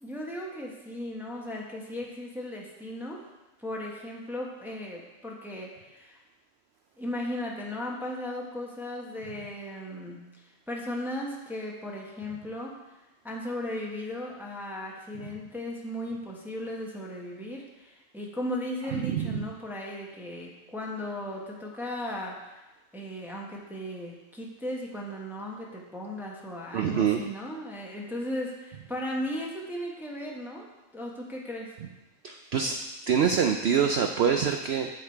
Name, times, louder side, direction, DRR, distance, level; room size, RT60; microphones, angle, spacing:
voice 1, 0.0-3.3 3.6-6.2 7.0-10.2 10.7-12.8 13.2-22.6 22.9-30.7 30.9-31.8, left 1 dB, ahead, -2 dB, 1.1 m, -36 dB
voice 2, 18.9-19.4 26.7-27.2 32.2-32.8 33.1-34.9, right 7 dB, 65° right, 5 dB, 0.7 m, -25 dB
8.3 x 7.2 x 4.5 m, 1.1 s
omnidirectional pair, 1.4 m